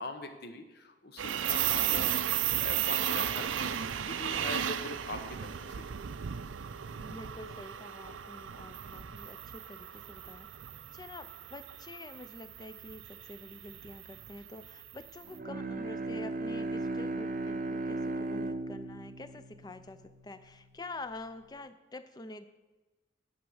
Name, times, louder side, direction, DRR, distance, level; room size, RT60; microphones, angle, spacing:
voice 1, 0.0-6.0, left 2 dB, 55° left, 7 dB, 0.9 m, -42 dB
sound 1, 1.2-15.2, right 10 dB, 85° right, 0.5 m, -35 dB
voice 2, 7.0-10.6 10.9-22.5, left 2 dB, 20° left, 12 dB, 0.4 m, -47 dB
Bowed string instrument, 15.3-20.6, right 2 dB, 45° right, 0.6 m, -36 dB
10.0 x 6.1 x 6.3 m, 1.2 s
head